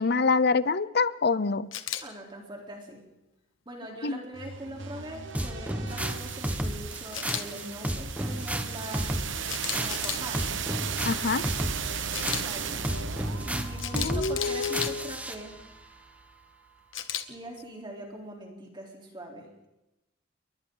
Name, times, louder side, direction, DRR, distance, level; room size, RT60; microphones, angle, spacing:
voice 1, 0.0-1.7 4.0-4.2 11.0-11.4 13.9-15.1, left 4 dB, 55° left, 17 dB, 0.7 m, -26 dB
Camera, 1.7-2.0 7.1-7.4 9.5-10.2 12.1-12.4 13.8-14.9 16.9-17.2, left 11 dB, 75° left, 1.6 m, -33 dB
voice 2, 2.0-3.0 3.7-9.3 9.7-10.4 12.4-13.0 13.4-15.5 17.3-19.7, right 1 dB, 25° right, 0 dB, 3.8 m, -42 dB
sound 1, 4.3-16.2, right 6 dB, 70° right, 1.3 m, -36 dB
sound 2, 5.3-15.4, right 1 dB, 5° right, 1.4 m, -32 dB
28.5 x 23.0 x 4.0 m, 0.94 s
head